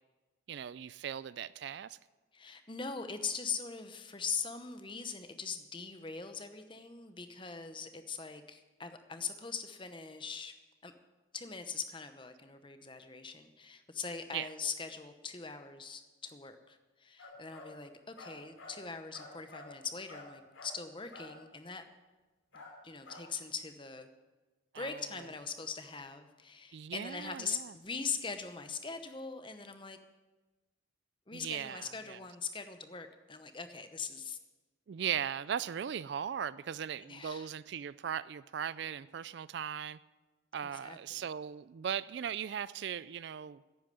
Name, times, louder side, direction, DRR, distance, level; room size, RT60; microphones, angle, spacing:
voice 1, 0.5-2.0 14.3-14.5 24.7-25.0 26.7-27.7 31.3-32.2 34.9-40.0 40.5-43.6, right 8 dB, 60° right, 18 dB, 0.3 m, -38 dB
voice 2, 2.3-10.5 10.8-10.9 11.3-21.8 22.5-24.1 24.7-30.0 31.3-34.4 37.0-37.5 40.6-41.2, left 5 dB, 25° left, 9 dB, 0.9 m, -41 dB
sound 1, 17.2-17.7 18.2-18.8 19.1-19.7 20.1-20.8 21.1-21.3 22.5-22.7 23.1-23.2, left 2 dB, 80° left, 3.0 m, -50 dB
10.5 x 8.8 x 9.4 m, 1.2 s
head